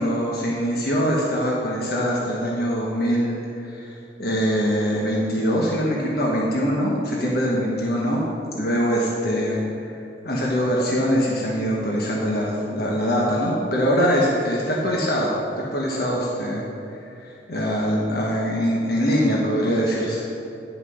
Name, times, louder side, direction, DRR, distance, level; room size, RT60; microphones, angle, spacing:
voice 1, 0.0-3.4 3.6-8.3 8.5-9.9 10.2-16.6 16.9-20.3, equal, 60° left, -3 dB, 1.2 m, -23 dB
10.5 x 5.7 x 6.3 m, 2.8 s
head